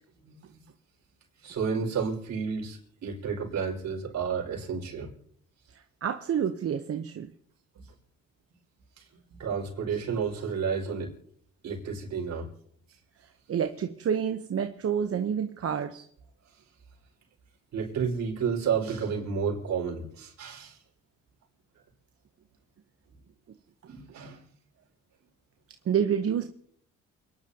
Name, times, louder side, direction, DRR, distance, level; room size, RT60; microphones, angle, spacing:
voice 1, 0.2-0.6 1.4-5.1 9.0-9.1 9.4-11.1 11.6-12.5 17.7-20.8 23.9-24.4, right 6 dB, 65° right, -1 dB, 5.3 m, -31 dB
voice 2, 6.0-7.3 13.5-16.0 25.9-26.5, right 8 dB, 50° right, 6 dB, 0.9 m, -28 dB
29.0 x 11.0 x 2.9 m, 0.64 s
cardioid pair, 90°, 30 cm